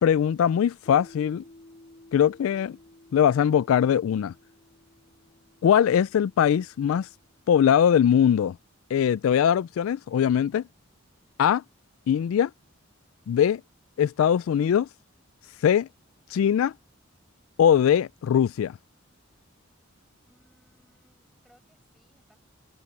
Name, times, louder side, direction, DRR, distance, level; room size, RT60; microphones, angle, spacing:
voice 1, 0.0-1.4 2.1-2.8 3.1-4.3 5.6-7.1 7.5-8.6 8.9-10.6 11.4-11.6 12.1-12.5 13.3-13.6 14.0-14.9 15.6-15.9 16.3-16.7 17.6-18.8, left 8 dB, 90° left, 0.3 m, -21 dB
Piano, 0.9-8.1, left 1 dB, 40° left, 4.2 m, -55 dB
voice 2, 20.3-22.4, equal, ahead, 6.9 m, -65 dB
head